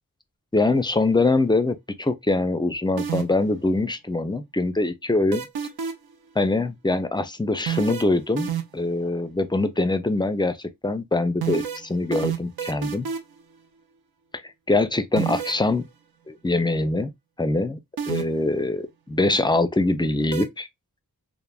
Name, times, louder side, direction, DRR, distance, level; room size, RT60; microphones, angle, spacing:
voice 1, 0.5-5.5 6.4-13.1 14.3-15.8 16.3-17.1 17.4-17.8 18.1-20.7, left 2 dB, 15° left, 0.4 m, -23 dB
sound 1, 3.0-3.5 5.3-6.1 7.7-8.9 11.4-13.4 15.2-15.7 18.0-18.5 20.3-20.4, right 8 dB, 80° right, 0.6 m, -28 dB
3.3 x 2.1 x 2.2 m
wide cardioid pair, 60°, 37 cm